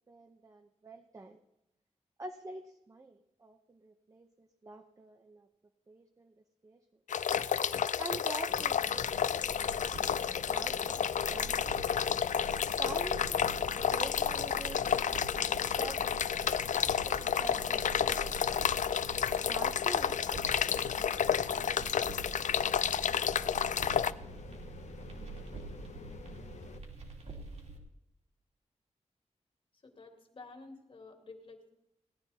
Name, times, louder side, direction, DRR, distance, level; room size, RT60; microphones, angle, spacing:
voice 1, 0.1-1.4 2.2-5.5 5.9-6.3 6.6-6.8 8.0-10.0 10.5-11.8 12.4-13.6 13.9-15.2 15.5-16.1 16.5-18.5 19.5-22.3, right 2 dB, 25° right, 6 dB, 0.8 m, -47 dB
sound 1, 7.1-24.1, left 8 dB, 85° left, 0.4 m, -31 dB
sound 2, 8.5-26.8, left 5 dB, 70° left, 1.0 m, -49 dB
sound 3, 8.5-27.8, right 3 dB, 60° right, 2.7 m, -47 dB
voice 2, 29.8-31.7, left 3 dB, 45° left, 4 dB, 2.3 m, -51 dB
17.5 x 12.0 x 4.1 m, 0.90 s
wide cardioid pair, 175°, 12 cm